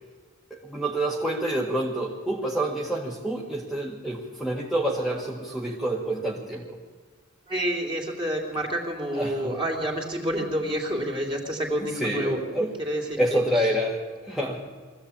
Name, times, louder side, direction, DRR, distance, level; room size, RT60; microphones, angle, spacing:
voice 1, 0.5-6.8 9.1-9.5 11.8-12.7 13.2-14.7, right 1 dB, ahead, -4 dB, 1.8 m, -28 dB
voice 2, 7.5-12.4 12.8-13.7, equal, 25° right, 1 dB, 3.4 m, -29 dB
22.5 x 15.0 x 8.7 m, 1.4 s
head